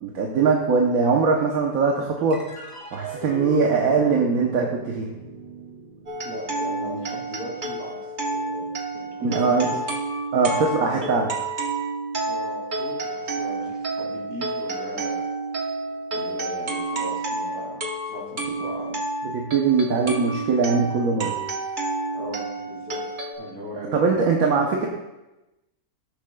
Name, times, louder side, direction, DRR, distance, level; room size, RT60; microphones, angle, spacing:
voice 1, 0.0-2.4 2.9-5.1 9.2-9.8 10.3-11.3 19.3-21.3 23.9-24.9, right 4 dB, 80° right, 0 dB, 1.3 m, -21 dB
sound 1, 2.3-9.0, right 2 dB, 20° left, 1.7 m, -38 dB
sound 2, 6.1-23.3, right 2 dB, 40° right, 1.1 m, -30 dB
voice 2, 6.2-9.9 10.5-11.3 12.1-15.2 16.1-17.8 18.1-19.0 22.1-23.0 23.4-24.2, equal, 60° right, -4 dB, 3.2 m, -38 dB
18.0 x 7.0 x 2.3 m, 1.0 s
omnidirectional pair, 1.5 m